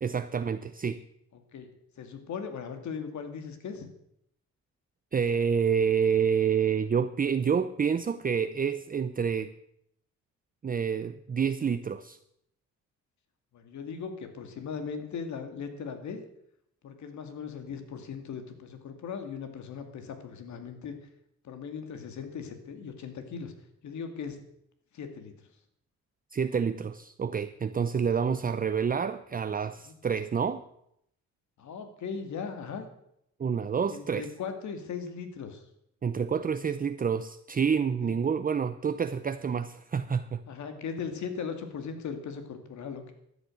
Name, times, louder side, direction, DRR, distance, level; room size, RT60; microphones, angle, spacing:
voice 1, 0.0-1.0 5.1-9.5 10.6-12.2 26.3-30.6 33.4-34.3 36.0-40.4, right 6 dB, 30° right, 10 dB, 0.7 m, -28 dB
voice 2, 2.0-3.9 13.5-16.2 16.8-20.9 21.4-23.5 23.8-24.4 24.9-25.3 29.9-30.0 31.6-32.9 33.9-35.6 38.0-38.1 40.5-43.1, left 6 dB, 70° left, 7 dB, 2.3 m, -38 dB
13.0 x 9.5 x 7.7 m, 0.75 s
cardioid pair, 90°, 30 cm